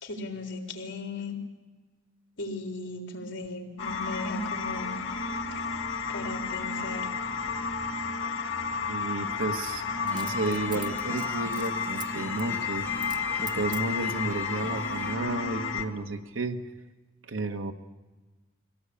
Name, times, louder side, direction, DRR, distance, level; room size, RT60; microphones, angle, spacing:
voice 1, 0.0-1.4 2.4-5.0 6.1-7.1, left 2 dB, 65° left, 2 dB, 3.7 m, -37 dB
sound 1, 3.8-15.8, left 5 dB, 80° left, 2.3 m, -32 dB
Coin (dropping), 7.4-7.6 10.1-12.1 12.4-12.6 13.0-13.2 13.5-14.3 14.9-15.4 15.7-15.8, right 6 dB, 20° right, 0.9 m, -43 dB
voice 2, 8.9-12.8 13.4-16.6 17.3-17.7, right 2 dB, 75° right, 6 dB, 1.5 m, -32 dB
sound 2, 10.1-15.2, left 1 dB, 10° left, 1.1 m, -42 dB
23.5 x 17.0 x 8.6 m, 1.2 s
head